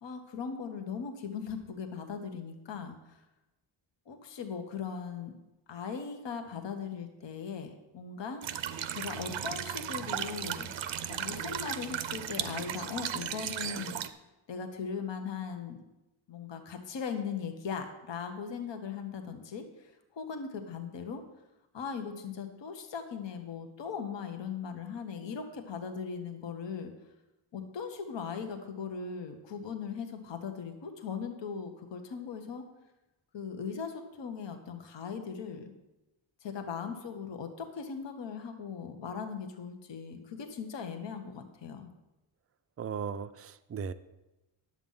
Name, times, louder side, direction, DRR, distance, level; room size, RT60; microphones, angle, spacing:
voice 1, 0.0-3.2 4.1-5.3 5.7-8.4 8.9-10.7 11.1-14.0 14.5-15.8 16.3-21.2 21.7-26.9 27.5-32.6 33.3-35.7 36.4-41.9, left 6 dB, 60° left, 6 dB, 1.2 m, -39 dB
sound 1, 8.4-14.1, right 9 dB, 65° right, 0.7 m, -36 dB
voice 2, 42.8-43.9, right 6 dB, 30° right, 12 dB, 0.4 m, -37 dB
10.5 x 7.5 x 5.5 m, 1.0 s
wide cardioid pair, 125°, 49 cm